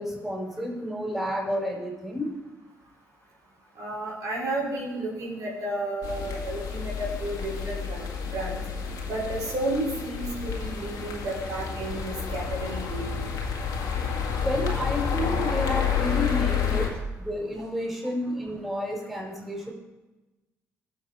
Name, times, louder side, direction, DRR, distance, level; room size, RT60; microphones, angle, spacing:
voice 1, 0.0-2.4 14.4-19.7, equal, 5° right, -2 dB, 4.6 m, -30 dB
voice 2, 3.8-8.1 8.3-8.6 9.1-13.3, right 1 dB, 65° right, -4 dB, 4.0 m, -32 dB
sound 1, 6.0-16.9, left 7 dB, 75° left, 2.0 m, -30 dB
16.5 x 6.3 x 4.8 m, 1.1 s
hypercardioid pair, 55°, 7 cm